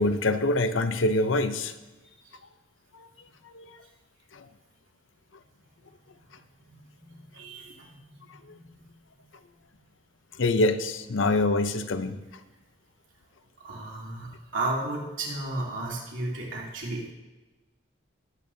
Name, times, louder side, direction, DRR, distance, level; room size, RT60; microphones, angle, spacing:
voice 1, 0.0-1.7 2.9-3.1 3.5-3.7 4.3-4.4 8.5-8.6 10.4-12.2, left 2 dB, 80° left, 9 dB, 0.7 m, -25 dB
voice 2, 7.3-7.9 8.5-8.8 13.6-17.1, right 2 dB, 80° right, -3 dB, 2.8 m, -33 dB
19.5 x 8.4 x 2.7 m, 1.1 s
head